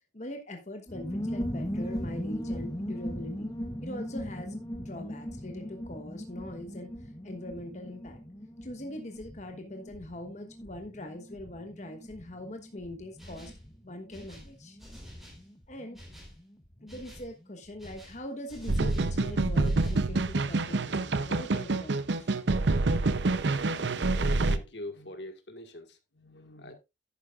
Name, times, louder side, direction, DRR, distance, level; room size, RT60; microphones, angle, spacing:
voice 1, 0.1-3.5 3.8-8.2 8.6-13.5 13.8-14.8 15.7-16.0 16.8-22.3, left 1 dB, 40° left, 1.2 m, -42 dB
sound 1, 0.9-17.2 17.4-17.5 17.7-18.1, equal, 20° left, 0.9 m, -39 dB
sound 2, 13.2-13.7 14.1-15.5 15.9-16.4 16.9-17.3 17.8-19.2 19.6-20.1, equal, ahead, 3.8 m, -49 dB
sound 3, 18.7-24.6, right 3 dB, 75° right, 0.7 m, -27 dB
voice 2, 23.9-26.7, left 1 dB, 70° left, 1.7 m, -44 dB
11.5 x 9.4 x 2.4 m
head